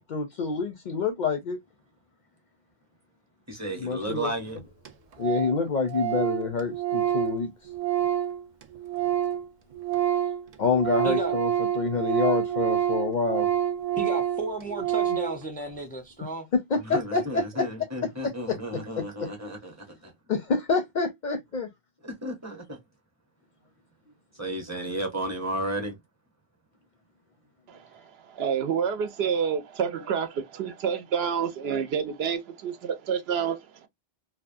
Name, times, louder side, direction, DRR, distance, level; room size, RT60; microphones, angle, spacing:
voice 1, 0.1-1.6 3.8-4.3 5.2-7.5 10.6-11.5 11.8-13.5 16.5-17.7 18.0-19.3 20.3-21.7, left 4 dB, 55° left, 0.6 m, -27 dB
voice 2, 3.5-4.6 16.7-20.1 22.0-22.8 24.3-26.0, right 1 dB, 15° right, 0.8 m, -33 dB
Organ, 4.3-4.4 4.6-4.7 4.9-5.0 5.2-5.6 5.9-9.5 9.7-15.4, right 11 dB, 55° right, 0.4 m, -27 dB
voice 3, 11.0-11.4 13.9-16.5, right 2 dB, 10° left, 0.5 m, -33 dB
voice 4, 27.7-33.9, right 7 dB, 75° right, 0.8 m, -29 dB
2.7 x 2.2 x 2.4 m
omnidirectional pair, 1.1 m